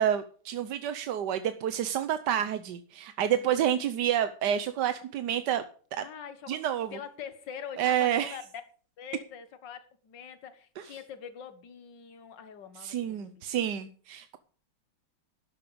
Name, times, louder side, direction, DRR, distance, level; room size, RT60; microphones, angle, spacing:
voice 1, 0.0-5.6 5.9-6.0 6.5-7.0 7.8-8.4 10.8-10.9 12.8-14.4, right 10 dB, 65° right, 1.2 m, -29 dB
voice 2, 6.0-6.6 6.9-8.4 9.0-13.4, left 8 dB, 60° left, 2.0 m, -44 dB
12.0 x 12.0 x 5.1 m
omnidirectional pair, 2.3 m